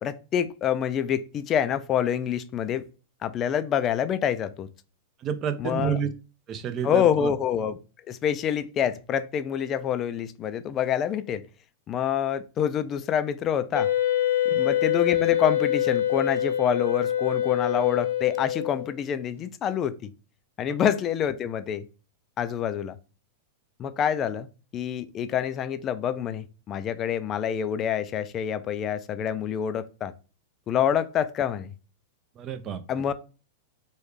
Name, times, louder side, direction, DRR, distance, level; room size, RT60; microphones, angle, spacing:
voice 1, 0.0-2.9 3.2-4.7 5.6-6.0 6.8-7.8 8.1-11.4 11.9-13.9 14.6-20.1 20.6-21.9 22.4-23.0 23.8-24.5 24.7-30.1 30.7-31.7 32.9-33.1, left 9 dB, 35° left, 0.3 m, -27 dB
voice 2, 5.2-6.1 6.5-7.3 20.7-20.8 32.4-32.8, right 8 dB, 35° right, 0.5 m, -29 dB
Wind instrument woodwind instrument, 13.7-18.9, left 11 dB, 80° left, 0.9 m, -25 dB
3.2 x 2.3 x 3.2 m
hypercardioid pair, 105°, 0 cm